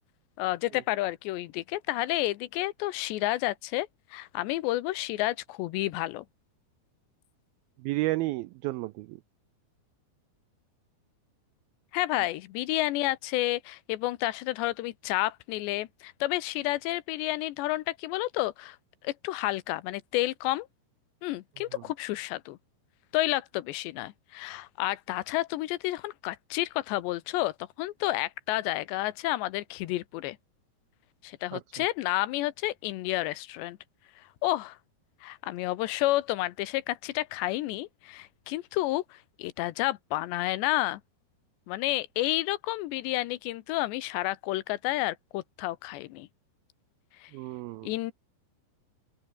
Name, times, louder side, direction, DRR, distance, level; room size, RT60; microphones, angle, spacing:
voice 1, 0.4-6.3 11.9-18.8 19.0-20.7 21.2-22.6 23.1-30.4 31.2-33.8 34.4-34.8 35.2-41.0 41.7-46.3 47.2-47.3 47.8-48.1, left 17 dB, 90° left, 3.2 m, -30 dB
voice 2, 7.8-9.2 31.5-31.6 47.3-47.9, right 19 dB, 85° right, 2.1 m, -31 dB
open air
omnidirectional pair, 4.9 m